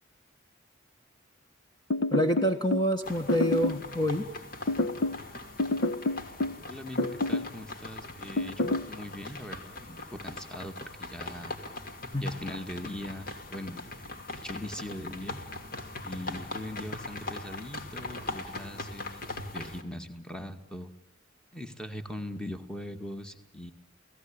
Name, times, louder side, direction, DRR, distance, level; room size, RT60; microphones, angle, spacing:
sound 1, 1.9-2.9 3.3-3.9 4.7-5.2 5.6-6.6 7.0-7.5 8.4-8.9, left 2 dB, 65° left, 1.0 m, -28 dB
voice 1, 2.1-4.3 12.1-12.3, equal, 20° left, 5 dB, 1.6 m, -27 dB
sound 2, 3.0-19.8, left 2 dB, 45° left, 2.7 m, -41 dB
voice 2, 6.6-11.5 12.1-13.8 14.4-15.4 16.0-20.9 21.5-23.7, left 1 dB, 5° left, 7 dB, 2.0 m, -41 dB
30.0 x 18.5 x 8.9 m, 0.92 s
head